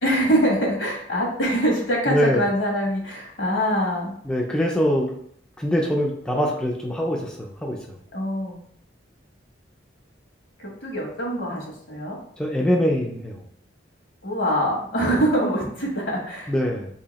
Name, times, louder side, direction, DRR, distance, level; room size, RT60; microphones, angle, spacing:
voice 1, 0.0-4.1 8.1-8.6 10.6-12.2 14.2-16.5, equal, 75° left, -2 dB, 1.3 m, -24 dB
voice 2, 2.1-2.5 4.2-5.1 5.6-7.8 12.4-13.4 16.5-16.9, equal, 5° left, -1 dB, 0.4 m, -23 dB
2.8 x 2.7 x 4.0 m, 0.65 s
head